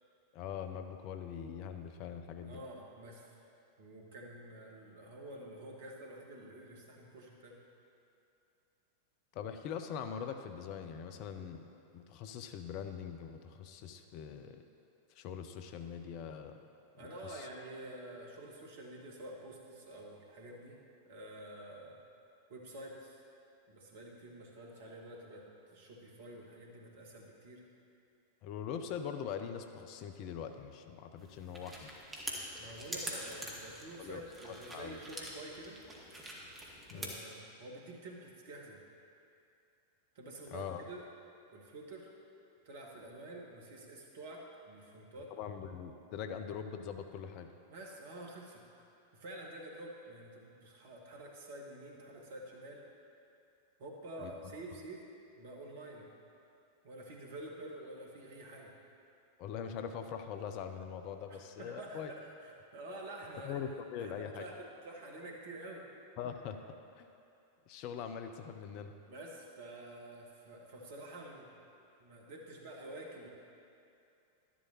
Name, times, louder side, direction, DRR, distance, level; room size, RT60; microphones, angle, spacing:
voice 1, 0.3-2.6 9.3-11.7 11.9-14.6 15.2-16.6 17.0-17.5 28.4-31.9 34.0-34.2 34.5-35.0 36.9-37.1 40.5-40.8 45.3-47.5 54.2-54.5 59.4-62.1 63.4-64.4 66.2-66.6 67.0-67.1 67.7-68.9, left 7 dB, 45° left, 7 dB, 0.6 m, -42 dB
voice 2, 2.4-3.3 3.8-7.6 17.0-20.8 21.0-22.0 22.5-23.2 23.7-27.6 32.6-35.8 36.9-38.8 40.1-41.0 41.5-42.1 42.6-45.3 47.7-48.6 49.1-52.8 53.8-55.0 55.3-56.1 56.8-58.7 61.3-65.8 69.1-71.6 72.0-73.3, right 1 dB, 55° right, 0 dB, 1.6 m, -48 dB
sound 1, 31.2-37.1, right 1 dB, 15° right, 1.7 m, -45 dB
12.0 x 11.0 x 3.0 m, 2.7 s
figure-of-eight pair, 90°, 0 cm